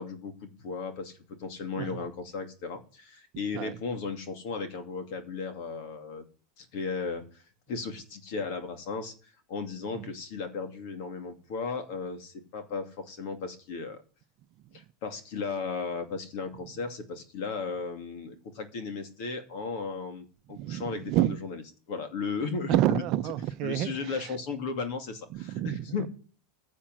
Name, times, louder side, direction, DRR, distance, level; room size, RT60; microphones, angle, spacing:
voice 1, 0.0-6.2 6.6-7.4 7.7-14.0 14.7-21.6 21.9-23.0 23.6-26.1, left 4 dB, 55° left, 2.4 m, -35 dB
voice 2, 20.5-21.3 22.7-24.3 25.3-26.1, right 14 dB, 45° right, 0.7 m, -29 dB
10.0 x 7.5 x 7.7 m
supercardioid pair, 145°, 0 cm